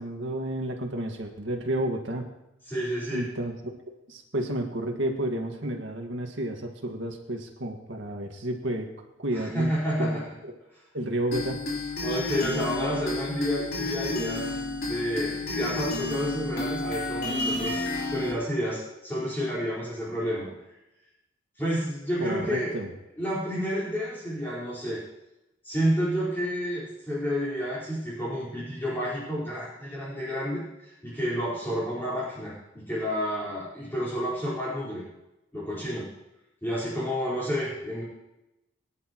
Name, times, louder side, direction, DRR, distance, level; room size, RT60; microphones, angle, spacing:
voice 1, 0.0-2.3 3.1-3.5 3.9-8.9 9.2-9.7 10.0-10.2 10.9-11.6 22.2-22.9, right 1 dB, 75° right, 2 dB, 1.9 m, -31 dB
voice 2, 2.6-3.2 9.3-10.3 10.7-10.8 12.0-14.5 14.8-20.5 21.6-22.7 23.2-25.0 25.6-35.1 35.5-36.1 36.6-38.0, equal, 10° left, -9 dB, 4.6 m, -30 dB
sound 1, 11.3-18.3, left 2 dB, 50° left, 3.8 m, -31 dB
23.0 x 11.0 x 3.1 m, 0.93 s
head